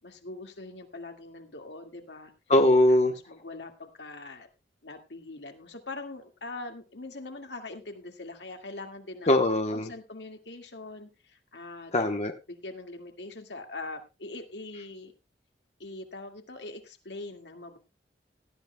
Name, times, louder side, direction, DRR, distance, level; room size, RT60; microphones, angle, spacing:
voice 1, 0.0-2.3 2.9-4.5 4.8-9.4 9.7-12.1 12.5-15.1 15.8-17.8, left 2 dB, 85° left, 5 dB, 2.0 m, -42 dB
voice 2, 2.5-3.1 9.3-9.9 11.9-12.3, left 1 dB, 40° left, 5 dB, 1.0 m, -21 dB
17.5 x 12.5 x 2.2 m, 0.26 s
head